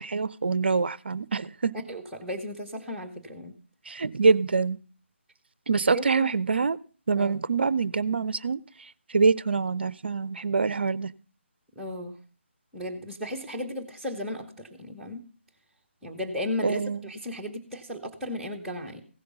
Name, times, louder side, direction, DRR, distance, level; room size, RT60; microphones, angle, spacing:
voice 1, 0.0-1.7 3.9-4.8 5.7-6.8 7.1-8.6 9.1-11.1 16.6-17.0, right 4 dB, 55° right, 0.5 m, -25 dB
voice 2, 1.9-3.5 5.9-6.3 7.1-7.4 11.7-12.2 12.7-15.2 16.0-19.0, left 1 dB, 5° right, 1.2 m, -35 dB
16.0 x 6.6 x 5.3 m
figure-of-eight pair, 150°, 7 cm